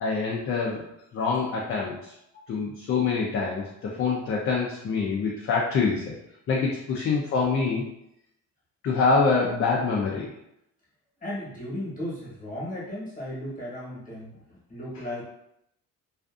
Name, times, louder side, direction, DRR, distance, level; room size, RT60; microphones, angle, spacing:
voice 1, 0.0-0.9 1.1-2.1 2.5-6.1 6.5-7.9 8.8-10.3, left 4 dB, 45° left, -3 dB, 0.4 m, -25 dB
voice 2, 11.2-15.2, left 1 dB, 25° left, -6 dB, 1.1 m, -35 dB
2.4 x 2.4 x 2.4 m, 0.79 s
cardioid pair, 120°, 32 cm